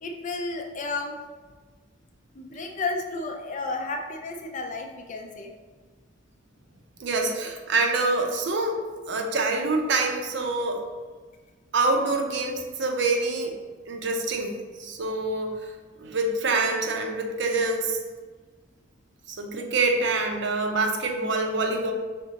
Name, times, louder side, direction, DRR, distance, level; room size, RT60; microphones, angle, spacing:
voice 1, 0.0-1.2 2.3-5.5, left 3 dB, 40° left, 4 dB, 0.5 m, -32 dB
voice 2, 7.0-8.8 9.1-10.9 11.7-13.6 13.9-15.7 16.0-18.0 19.3-21.9, right 3 dB, 65° right, 3 dB, 0.6 m, -26 dB
5.1 x 3.6 x 2.8 m, 1.4 s
head